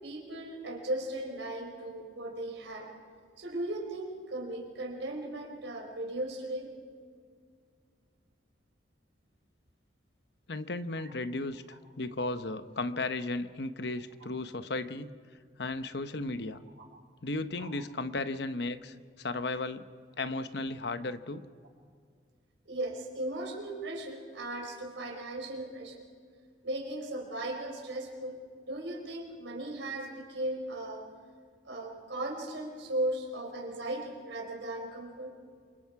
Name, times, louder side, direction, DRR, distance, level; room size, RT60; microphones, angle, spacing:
voice 1, 0.0-2.9 3.4-6.7 17.6-17.7 22.6-26.1 26.6-28.4 28.7-31.0 31.6-35.4, right 1 dB, 90° right, 1 dB, 4.7 m, -37 dB
voice 2, 10.5-15.2 15.6-16.6 17.2-19.9 20.2-21.5, left 2 dB, 65° left, 11 dB, 0.9 m, -35 dB
28.0 x 24.0 x 4.8 m, 2.1 s
head